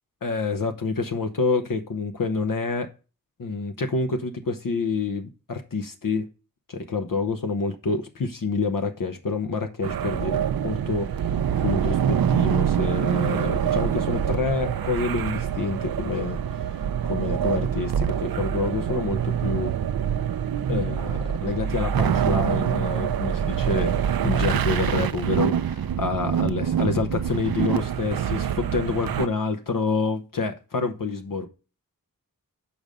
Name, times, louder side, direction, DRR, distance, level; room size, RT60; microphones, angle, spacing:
voice 1, 0.2-2.9 3.4-6.3 6.7-11.3 11.6-19.7 20.7-31.5, left 4 dB, 70° left, 0.9 m, -28 dB
sound 1, 9.8-29.3, right 9 dB, 85° right, 0.5 m, -25 dB
7.2 x 5.0 x 5.2 m
wide cardioid pair, 70°, 35 cm